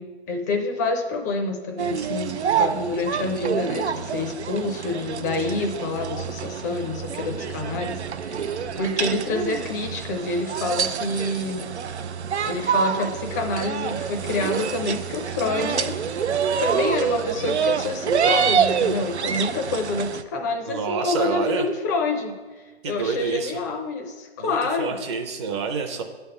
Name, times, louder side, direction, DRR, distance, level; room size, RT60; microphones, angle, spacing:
voice 1, 0.0-11.7 12.5-16.0 16.6-22.4 22.8-25.0, left 3 dB, 15° left, 4 dB, 0.5 m, -27 dB
sound 1, 1.8-20.2, right 7 dB, 90° right, 0.6 m, -26 dB
voice 2, 20.7-21.7 22.8-23.6 24.4-26.0, right 5 dB, 25° right, 4 dB, 0.6 m, -28 dB
9.5 x 3.5 x 6.9 m, 1.3 s
hypercardioid pair, 145°, 32 cm